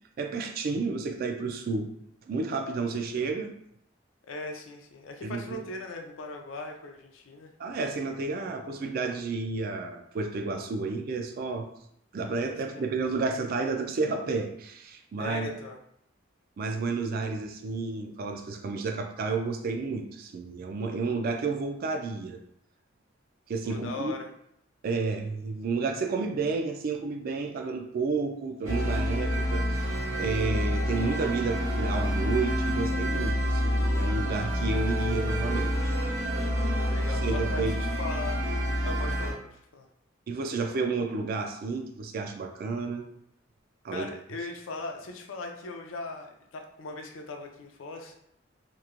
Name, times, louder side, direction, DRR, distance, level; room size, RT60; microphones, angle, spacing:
voice 1, 0.2-1.9 2.3-3.5 5.2-5.6 7.6-11.7 12.1-15.5 16.6-22.4 23.5-24.1 24.8-36.0 37.2-37.7 40.3-43.0 43.8-44.1, right 4 dB, 50° right, 5 dB, 0.3 m, -31 dB
voice 2, 4.3-7.5 12.7-13.0 15.2-15.8 23.6-24.3 36.7-38.4 38.8-39.9 43.9-48.1, left 2 dB, 85° left, 3 dB, 0.4 m, -39 dB
sound 1, 28.6-39.3, equal, 80° right, 0.9 m, -28 dB
2.9 x 2.1 x 2.4 m, 0.72 s
head